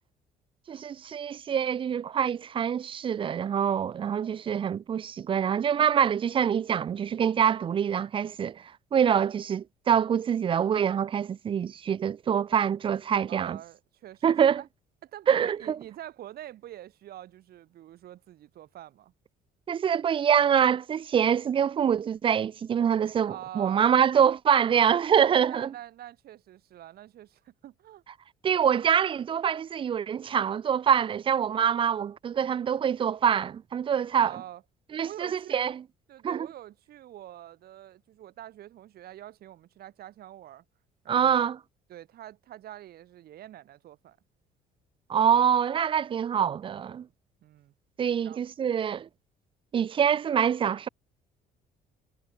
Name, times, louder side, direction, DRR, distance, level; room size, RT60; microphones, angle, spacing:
voice 1, 0.7-8.6 8.9-13.6 14.2-14.6 15.3-15.8 19.7-25.7 28.4-34.4 34.9-35.8 36.2-36.5 41.1-41.6 45.1-47.1 48.0-49.1 49.7-50.9, right 8 dB, 30° right, 0.4 m, -25 dB
voice 2, 13.3-14.7 15.0-19.1 23.3-23.9 24.7-24.9 25.5-28.0 34.1-34.6 35.0-35.7 36.1-40.6 41.0-41.5 41.9-44.2 47.4-47.7 48.2-48.4, right 13 dB, 65° right, 4.2 m, -45 dB
cardioid pair, 110°, 17 cm